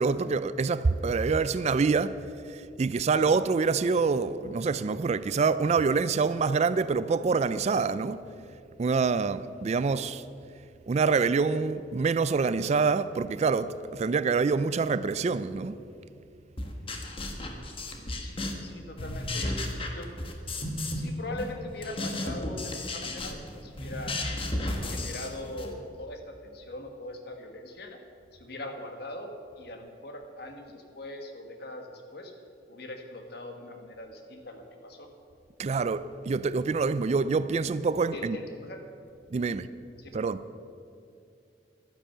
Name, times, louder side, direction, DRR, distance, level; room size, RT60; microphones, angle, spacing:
voice 1, 0.0-2.2 2.5-8.2 8.8-10.2 10.9-15.8 35.6-38.4 39.3-39.7 40.1-40.6, right 4 dB, 40° right, 0.4 m, -26 dB
sound 1, 16.6-18.7 19.0-21.1 21.4-25.7, left 1 dB, 30° left, 1.3 m, -34 dB
voice 2, 18.2-19.6 19.9-20.1 20.9-24.2 24.9-28.0 28.3-29.3 29.6-32.3 32.7-35.1 38.1-38.8 39.4-39.6 40.0-40.3, left 1 dB, 65° left, 1.5 m, -41 dB
11.5 x 10.0 x 6.7 m
head